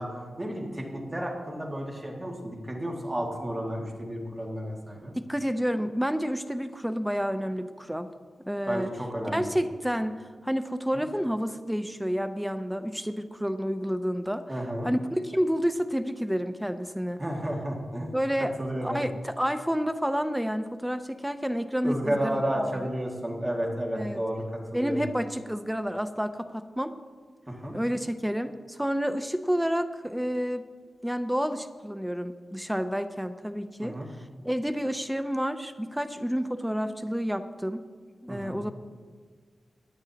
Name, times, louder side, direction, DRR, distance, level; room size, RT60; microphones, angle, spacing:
voice 1, 0.0-5.1 8.7-9.5 10.9-11.0 14.5-14.9 17.2-18.2 18.6-19.0 21.8-25.1 27.5-27.8 33.8-34.1 38.3-38.6, equal, 20° right, -1 dB, 2.1 m, -32 dB
voice 2, 5.2-8.1 8.4-8.9 9.3-14.4 14.8-17.2 18.1-18.5 18.8-22.9 24.0-24.2 24.7-26.9 27.7-30.6 31.0-34.0 34.4-37.8 38.2-38.7, equal, 5° right, 10 dB, 0.5 m, -29 dB
17.5 x 9.9 x 2.9 m, 1.5 s
wide cardioid pair, 100°, 0 cm